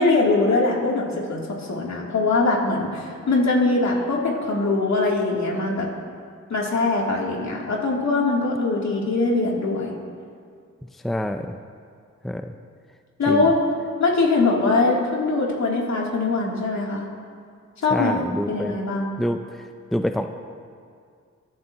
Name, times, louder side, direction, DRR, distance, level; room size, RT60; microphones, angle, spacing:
voice 1, 0.0-5.9 6.5-9.9 13.2-13.6 14.0-17.1 17.8-19.2, left 3 dB, 70° left, -3 dB, 3.1 m, -22 dB
voice 2, 11.0-11.5 12.2-12.5 13.3-13.5 17.9-18.7 19.2-19.4 19.9-20.3, equal, ahead, 6 dB, 0.5 m, -26 dB
25.5 x 12.5 x 3.0 m, 2.2 s
cardioid pair, 85°, 29 cm